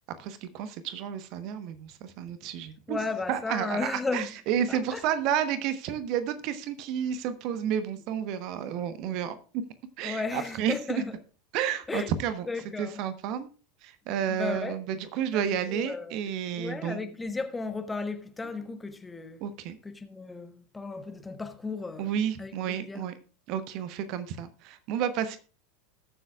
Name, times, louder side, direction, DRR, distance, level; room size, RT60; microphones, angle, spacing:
voice 1, 0.2-3.0 3.3-9.6 10.0-11.0 11.5-12.5 12.8-13.5 13.8-17.1 19.4-19.8 22.0-23.2 23.5-25.4, right 9 dB, 45° right, 1.0 m, -31 dB
voice 2, 2.9-4.3 4.7-5.0 10.0-11.1 11.9-12.1 12.5-13.0 14.4-14.8 15.3-15.4 15.7-16.2 16.6-19.4 19.9-22.1 22.4-23.0, left 3 dB, 10° left, 1.2 m, -34 dB
20.5 x 7.6 x 2.4 m
figure-of-eight pair, 80°, 0 cm